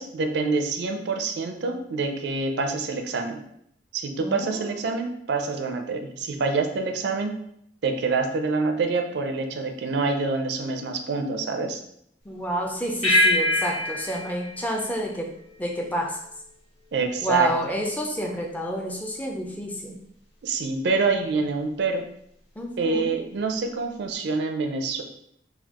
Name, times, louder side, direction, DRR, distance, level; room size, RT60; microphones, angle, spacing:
voice 1, 0.0-3.4 3.9-7.3 7.8-11.8 16.9-17.5 20.4-22.0 22.8-25.0, right 4 dB, 65° right, 5 dB, 0.4 m, -26 dB
voice 2, 4.2-4.8 12.2-15.3 15.6-16.2 17.2-20.0 22.6-23.2, right 1 dB, 10° left, 1 dB, 0.4 m, -29 dB
sound 1, 13.0-15.8, left 1 dB, 35° left, 1.3 m, -25 dB
4.0 x 2.3 x 2.9 m, 0.72 s
head